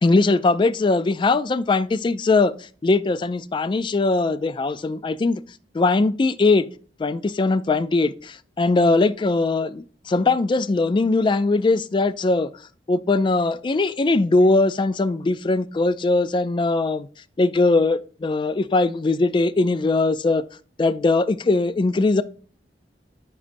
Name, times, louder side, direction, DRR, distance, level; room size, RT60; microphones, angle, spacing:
voice 1, 0.0-2.5 2.8-5.4 5.7-6.6 7.0-12.5 12.9-17.1 17.4-20.4 20.8-22.2, left 3 dB, 25° left, 0.3 m, -20 dB
10.0 x 4.1 x 2.6 m
head